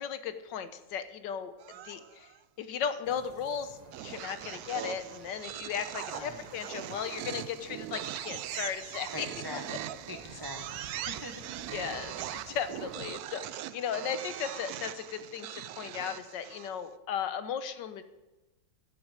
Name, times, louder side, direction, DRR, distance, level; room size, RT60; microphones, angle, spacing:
voice 1, 0.0-1.5 1.8-2.3 2.6-9.3 11.7-18.0, left 8 dB, 75° left, 11 dB, 1.3 m, -36 dB
sound 1, 1.6-2.4 3.9-16.9, right 12 dB, 75° right, 0.9 m, -41 dB
sound 2, 3.0-13.2, right 4 dB, 60° right, 0.4 m, -53 dB
voice 2, 6.1-6.5 9.1-11.4, left 1 dB, 15° right, 4 dB, 0.8 m, -43 dB
14.5 x 9.6 x 5.0 m, 1.1 s
omnidirectional pair, 2.1 m